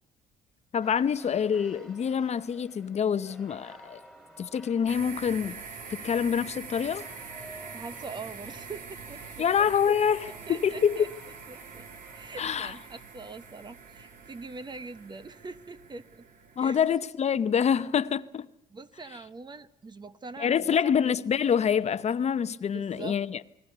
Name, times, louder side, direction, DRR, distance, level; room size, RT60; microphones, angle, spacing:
voice 1, 0.7-4.0 4.4-5.6 5.9-7.1 9.4-11.1 12.4-12.7 16.6-18.5 20.4-23.4, left 7 dB, 40° left, 0.8 m, -26 dB
sound 1, 0.8-12.6, equal, ahead, 3.6 m, -53 dB
sound 2, 4.9-16.8, right 5 dB, 55° right, 2.6 m, -45 dB
voice 2, 7.7-9.5 10.5-11.1 11.5-11.9 12.1-16.2 16.6-16.8 18.7-20.9 22.7-23.2, right 4 dB, 25° right, 1.0 m, -43 dB
28.5 x 21.0 x 6.8 m
cardioid pair, 110°, 17 cm